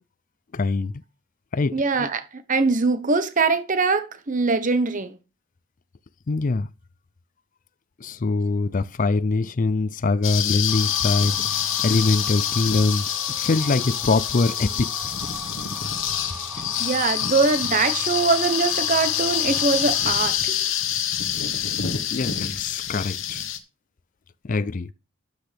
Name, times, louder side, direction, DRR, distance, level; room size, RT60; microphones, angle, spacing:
voice 1, 0.5-0.9 1.5-1.8 6.3-6.7 8.0-11.4 11.8-14.9 21.6-21.7 22.1-23.4 24.4-24.9, left 3 dB, 40° left, 0.5 m, -23 dB
voice 2, 1.7-5.1 16.8-20.6, right 4 dB, 40° right, 1.0 m, -22 dB
sound 1, 10.2-23.6, left 10 dB, 70° left, 1.3 m, -26 dB
sound 2, 10.7-20.1, right 1 dB, 5° right, 1.7 m, -39 dB
12.5 x 7.9 x 3.4 m
head